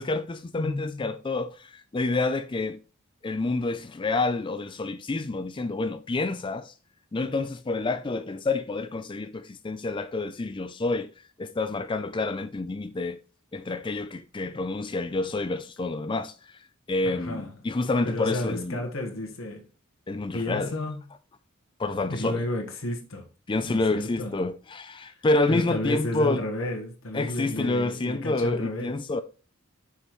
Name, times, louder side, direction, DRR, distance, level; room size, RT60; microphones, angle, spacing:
voice 1, 0.0-2.8 3.2-6.7 7.1-11.1 11.4-13.2 13.5-16.6 16.9-18.8 20.1-20.7 21.8-22.4 23.5-26.4 27.1-29.2, left 2 dB, 25° left, 0.4 m, -28 dB
voice 2, 0.6-1.1 17.0-17.5 18.0-19.7 20.3-21.0 22.1-23.3 23.6-24.3 25.0-28.9, left 1 dB, 70° left, 1.4 m, -32 dB
7.9 x 5.6 x 3.1 m
head